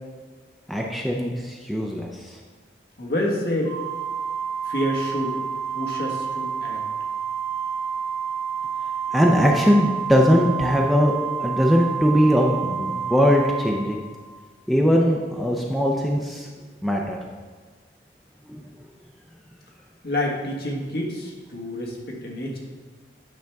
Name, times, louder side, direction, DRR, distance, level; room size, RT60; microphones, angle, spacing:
voice 1, 0.7-2.3 9.1-11.1 11.4-14.0 14.7-16.5 16.8-17.2 18.5-18.6, equal, ahead, -1 dB, 0.5 m, -20 dB
voice 2, 3.0-3.8 4.6-5.4 5.7-6.8 20.0-22.6, left 1 dB, 55° left, -2 dB, 1.5 m, -28 dB
Organ, 3.6-14.4, right 7 dB, 30° left, 2.3 m, -29 dB
9.1 x 5.8 x 3.5 m, 1.4 s
head